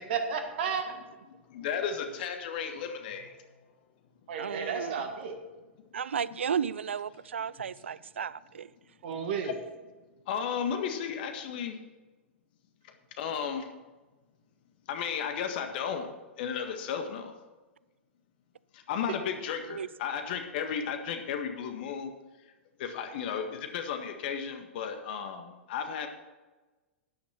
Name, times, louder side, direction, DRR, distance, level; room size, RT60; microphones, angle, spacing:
voice 1, 0.1-0.9 4.3-5.4 9.0-9.5 19.1-19.2, right 6 dB, 55° right, 1.6 m, -32 dB
voice 2, 1.5-3.3 6.2-6.3 9.4-9.5 10.3-11.8 13.2-13.7 14.9-16.1 16.4-17.3 18.7-22.1 22.8-26.1, left 7 dB, 50° left, 1.6 m, -34 dB
voice 3, 4.4-4.9 5.9-8.7 19.7-19.9, right 7 dB, 75° right, 0.4 m, -33 dB
13.0 x 9.6 x 4.4 m
figure-of-eight pair, 100°, 7 cm